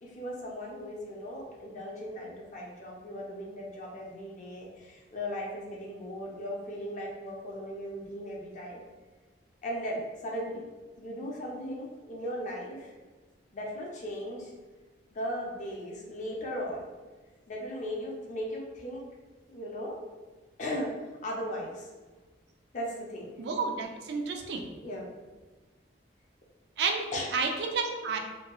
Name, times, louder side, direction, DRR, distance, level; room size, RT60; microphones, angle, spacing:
voice 1, 0.0-8.8 9.6-10.6 11.0-12.9 13.5-14.5 15.1-16.8 17.5-19.0 19.5-20.0 20.6-20.9 21.2-21.9 22.7-23.3 24.8-25.1 27.1-27.3, equal, 40° left, -2 dB, 0.5 m, -37 dB
voice 2, 23.4-24.7 26.8-27.0 27.3-28.2, right 4 dB, 60° right, 3 dB, 0.3 m, -30 dB
2.6 x 2.3 x 2.9 m, 1.3 s
head